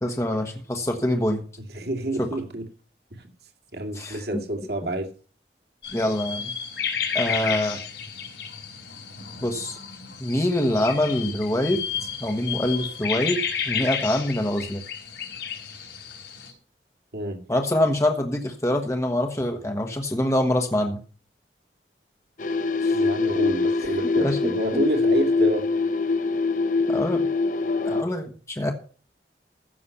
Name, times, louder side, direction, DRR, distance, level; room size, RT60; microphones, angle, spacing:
voice 1, 0.0-1.4 2.2-2.3 3.9-4.2 5.9-6.5 7.1-7.8 9.4-9.8 10.2-11.8 12.2-14.8 17.5-21.0 22.8-23.0 24.2-24.4 26.9-27.2 27.8-28.7, left 1 dB, 15° left, 3 dB, 1.1 m, -25 dB
voice 2, 1.6-2.7 3.2-3.3 3.7-5.1 17.1-17.4 22.9-25.7, right 1 dB, 65° right, 3 dB, 2.4 m, -28 dB
sound 1, 5.8-16.5, left 7 dB, 80° left, 4.0 m, -32 dB
sound 2, 22.4-28.0, left 3 dB, 45° left, 0.6 m, -23 dB
15.0 x 6.7 x 5.6 m, 0.40 s
head